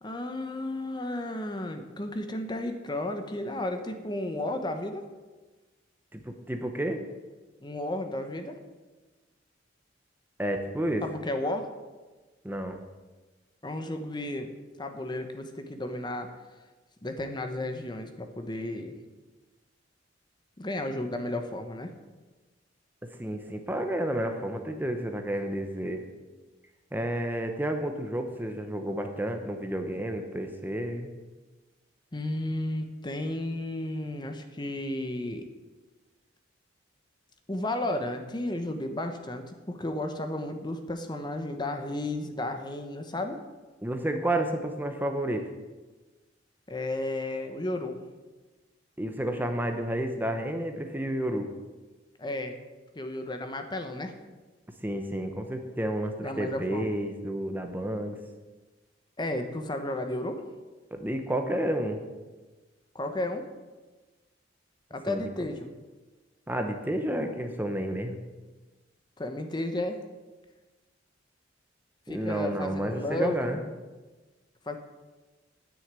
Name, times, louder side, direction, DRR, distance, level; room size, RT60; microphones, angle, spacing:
voice 1, 0.0-5.0 7.6-8.6 11.0-11.7 13.6-14.5 14.8-16.3 17.0-18.9 20.6-21.9 32.1-35.4 37.5-43.4 46.7-48.0 52.2-52.6 52.9-54.1 56.2-56.9 59.2-60.4 62.9-63.5 64.9-65.7 69.2-70.0 72.1-73.6 74.7-74.8, left 1 dB, 25° left, 6 dB, 0.9 m, -33 dB
voice 2, 6.1-7.0 10.4-11.1 12.4-12.8 23.1-26.0 26.9-31.1 43.8-45.5 49.0-51.5 54.8-58.2 60.9-62.0 65.1-65.3 66.5-68.2 72.1-73.6, right 1 dB, 10° right, 5 dB, 0.8 m, -31 dB
10.0 x 6.4 x 8.9 m, 1.2 s
head